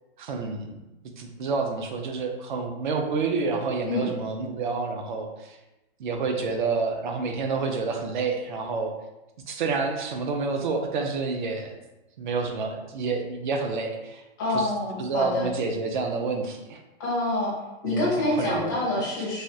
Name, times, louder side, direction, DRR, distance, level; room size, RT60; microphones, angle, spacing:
voice 1, 0.2-0.8 1.2-5.6 6.0-8.9 9.5-11.8 12.2-14.2 14.5-14.7 15.0-16.8 17.8-18.7, right 4 dB, 50° right, 4 dB, 0.4 m, -29 dB
voice 2, 14.4-15.5 17.0-17.5 17.8-19.4, left 2 dB, 20° left, -5 dB, 0.4 m, -26 dB
3.3 x 2.3 x 2.6 m, 1.0 s
supercardioid pair, 175°, 33 cm